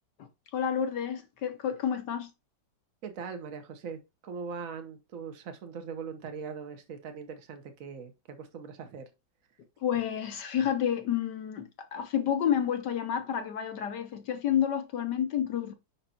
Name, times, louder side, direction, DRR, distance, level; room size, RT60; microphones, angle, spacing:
voice 1, 0.2-2.3 9.8-15.7, left 9 dB, 65° left, 1.4 m, -30 dB
voice 2, 3.0-9.1, right 6 dB, 45° right, 1.4 m, -41 dB
5.7 x 5.3 x 4.3 m
omnidirectional pair, 2.2 m